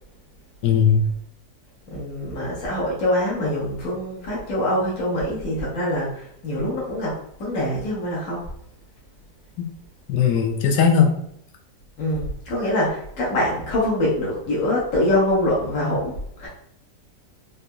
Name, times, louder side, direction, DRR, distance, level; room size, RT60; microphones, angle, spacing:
voice 1, 0.6-1.0 9.6-9.7 10.1-11.1, left 7 dB, 80° left, 3 dB, 1.2 m, -18 dB
voice 2, 1.9-8.5 12.0-16.5, left 1 dB, 55° left, -6 dB, 1.4 m, -24 dB
4.0 x 2.6 x 2.2 m, 0.70 s
omnidirectional pair, 1.9 m